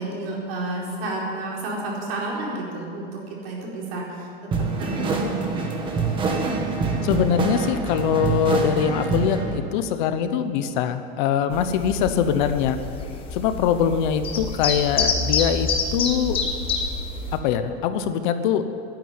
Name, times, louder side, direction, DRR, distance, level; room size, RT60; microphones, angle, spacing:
voice 1, 0.0-5.5 11.7-12.1, right 2 dB, 70° right, -3 dB, 4.6 m, -31 dB
sound 1, 4.5-9.6, right 4 dB, 15° right, 1.2 m, -25 dB
voice 2, 7.0-12.8 13.3-16.4 17.4-18.6, left 8 dB, 50° left, 10 dB, 0.9 m, -23 dB
sound 2, 11.5-17.4, left 4 dB, 20° left, 1.1 m, -27 dB
11.5 x 10.0 x 9.6 m, 2.6 s
supercardioid pair, 175°, 31 cm